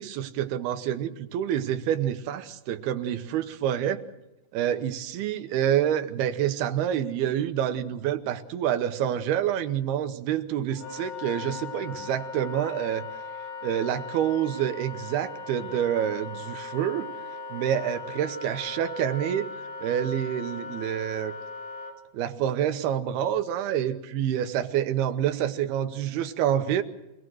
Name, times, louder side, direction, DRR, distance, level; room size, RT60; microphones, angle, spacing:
voice 1, 0.0-4.0 4.5-13.0 13.6-17.1 17.5-19.5 19.8-21.3 22.1-26.8, right 10 dB, 70° right, 9 dB, 2.7 m, -27 dB
Wind instrument woodwind instrument, 10.7-21.9, left 4 dB, 80° left, 5.1 m, -39 dB
25.0 x 18.0 x 6.4 m, 0.95 s
omnidirectional pair, 5.1 m